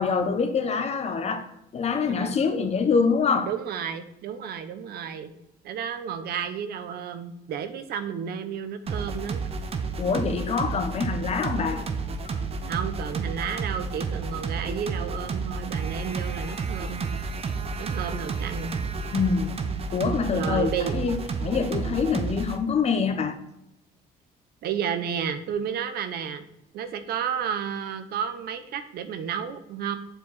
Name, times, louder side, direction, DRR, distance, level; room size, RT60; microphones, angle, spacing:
voice 1, 0.0-1.5 1.7-3.5 10.0-11.8 12.2-12.4 19.1-19.6 19.9-21.2 21.4-23.4, left 5 dB, 40° left, 8 dB, 0.9 m, -25 dB
voice 2, 2.1-2.4 3.5-5.3 5.6-9.4 12.7-17.1 17.8-18.7 20.3-21.0 24.6-26.4 26.7-30.0, right 8 dB, 65° right, 11 dB, 0.8 m, -32 dB
sound 1, 8.9-22.6, right 4 dB, 35° right, 0.8 m, -31 dB
7.8 x 4.6 x 4.0 m, 0.82 s
cardioid pair, 110°, 17 cm